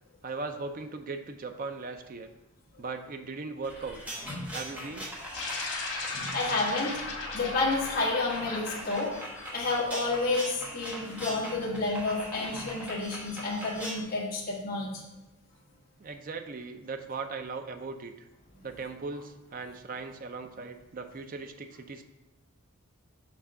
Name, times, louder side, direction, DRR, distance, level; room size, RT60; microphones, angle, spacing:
voice 1, 0.2-2.3 2.8-4.0 4.5-5.1 16.0-18.3 18.6-22.0, right 4 dB, 40° right, 7 dB, 0.5 m, -38 dB
sound 1, 3.6-14.0, equal, 5° right, 1.2 m, -41 dB
sound 2, 5.3-10.0, left 3 dB, 85° left, 1.7 m, -37 dB
voice 2, 6.1-7.0 7.3-9.1 9.5-15.0, left 3 dB, 40° left, -6 dB, 1.5 m, -30 dB
5.9 x 3.6 x 5.5 m, 1.0 s
head